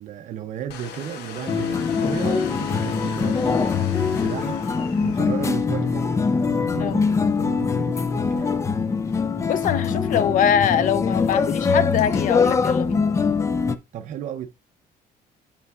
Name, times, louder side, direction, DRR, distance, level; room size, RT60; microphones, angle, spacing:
voice 1, 0.0-4.6 5.0-6.1 6.5-8.6 13.9-14.5, right 10 dB, 50° right, 0.5 m, -34 dB
Domestic sounds home sounds, 0.7-13.8, left 8 dB, 85° left, 1.2 m, -43 dB
sound 1, 1.5-13.8, left 5 dB, 20° left, 0.4 m, -23 dB
voice 2, 9.4-13.0, left 9 dB, 50° left, 0.7 m, -23 dB
8.1 x 6.9 x 2.4 m
cardioid pair, 170°, 17 cm